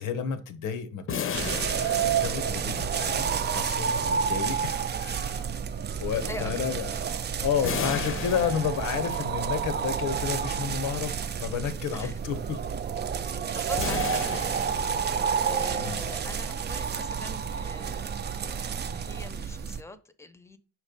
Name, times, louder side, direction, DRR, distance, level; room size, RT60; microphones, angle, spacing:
voice 1, 0.0-1.6 2.0-5.5 6.0-6.9 7.4-12.6 15.8-16.0, left 7 dB, 85° left, 1.0 m, -31 dB
sound 1, 1.1-3.0 7.6-9.3 13.8-15.4, left 7 dB, 45° left, 0.7 m, -34 dB
sound 2, 1.3-19.8, right 7 dB, 35° right, 0.5 m, -30 dB
voice 2, 6.1-6.5 6.9-7.0 7.6-7.7 11.9-12.2 13.2-14.7 15.5-20.6, left 2 dB, 10° left, 0.7 m, -43 dB
6.0 x 3.2 x 5.1 m
cardioid pair, 90°, 30 cm